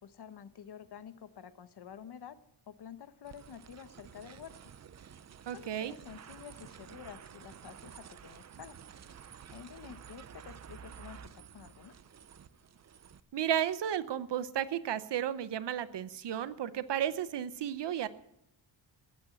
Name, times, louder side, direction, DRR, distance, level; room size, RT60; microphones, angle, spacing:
voice 1, 0.0-4.7 5.5-8.8 9.5-12.0, left 8 dB, 55° left, 12 dB, 1.0 m, -50 dB
sound 1, 3.2-13.2, right 8 dB, 35° right, 0.5 m, -52 dB
voice 2, 5.5-5.9 13.3-18.1, right 10 dB, 60° right, 14 dB, 0.9 m, -33 dB
16.0 x 8.9 x 8.3 m, 0.81 s
wide cardioid pair, 145°, 46 cm